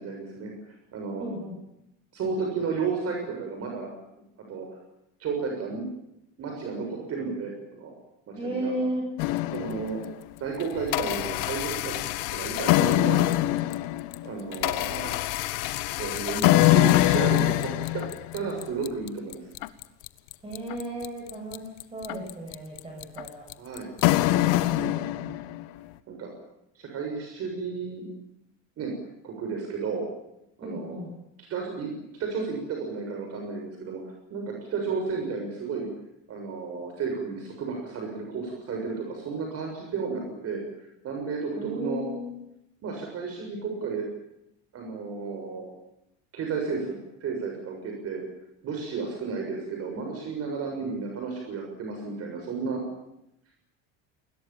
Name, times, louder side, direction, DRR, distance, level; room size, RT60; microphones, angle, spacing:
voice 1, 0.0-1.3 2.1-3.9 4.5-4.7 5.2-5.8 6.4-7.9 8.4-8.7 9.5-10.0 10.4-12.0 12.3-13.2 14.2-15.2 16.0-18.0 18.3-19.5 23.6-23.9 24.3-24.5 26.1-26.3 26.8-28.1 28.8-28.9 29.2-30.0 30.6-31.0 31.5-31.9 32.2-34.0 34.3-35.9 36.3-40.6 41.0-42.0 42.8-44.0 44.7-45.7 46.3-46.9 47.2-48.2 48.6-52.8, right 5 dB, 45° right, 1 dB, 7.0 m, -32 dB
voice 2, 1.2-1.6 8.4-9.1 20.4-21.6 21.9-23.4 24.7-25.4 30.6-31.1 41.6-42.3, right 1 dB, 15° right, -2 dB, 8.0 m, -34 dB
sound 1, 9.2-10.1 10.6-25.6, left 16 dB, 80° left, 1.4 m, -24 dB
28.5 x 21.0 x 7.3 m, 0.84 s
cardioid pair, 145°, 35 cm